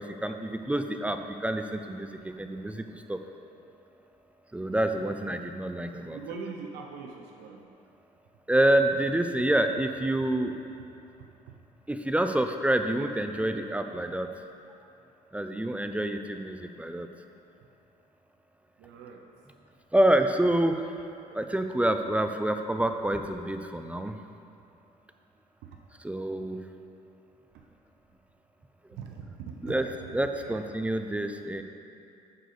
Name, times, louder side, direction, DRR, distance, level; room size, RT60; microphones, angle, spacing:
voice 1, 0.0-3.2 4.5-6.2 8.5-10.6 11.9-14.3 15.3-17.1 19.9-21.0 21.3-24.2 26.0-26.6 28.9-29.0 29.6-29.9 30.1-31.6, right 1 dB, 10° right, 7 dB, 0.4 m, -27 dB
voice 2, 6.1-7.6 18.8-19.2 29.0-30.7, right 5 dB, 90° right, 1 dB, 0.8 m, -41 dB
9.5 x 3.9 x 6.6 m, 2.7 s
cardioid pair, 110°, 17 cm